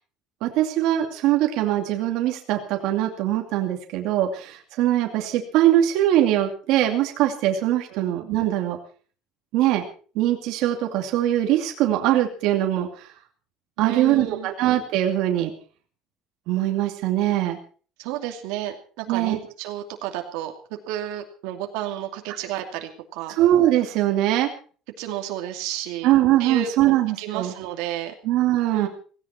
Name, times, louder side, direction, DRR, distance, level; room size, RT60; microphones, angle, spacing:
voice 1, 0.4-8.8 9.5-9.8 10.1-13.1 13.8-15.5 16.5-17.6 19.1-19.4 23.3-24.5 26.0-27.5 28.2-28.9, right 13 dB, 60° right, 3 dB, 2.5 m, -22 dB
voice 2, 13.8-14.5 18.0-20.5 20.9-23.4 25.0-26.1 26.4-28.1 28.7-28.9, right 11 dB, 85° right, 4 dB, 2.6 m, -32 dB
17.5 x 17.0 x 4.4 m, 0.41 s
cardioid pair, 170°, 0 cm